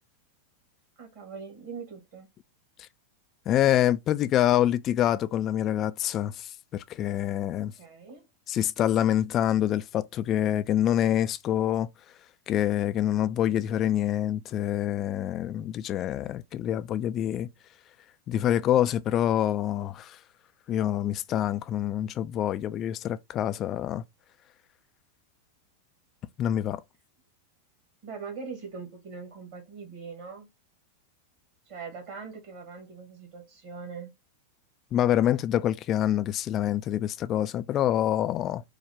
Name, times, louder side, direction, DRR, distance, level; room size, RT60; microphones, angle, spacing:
voice 1, 1.0-2.3 7.6-8.3 28.0-30.5 31.7-34.1, right 5 dB, 50° right, 2.0 m, -41 dB
voice 2, 3.5-7.7 8.5-11.9 12.5-17.5 18.3-20.2 20.7-24.0 26.4-26.8 34.9-38.6, left 11 dB, 30° left, 0.3 m, -26 dB
4.7 x 2.2 x 3.5 m
figure-of-eight pair, 90°, 0 cm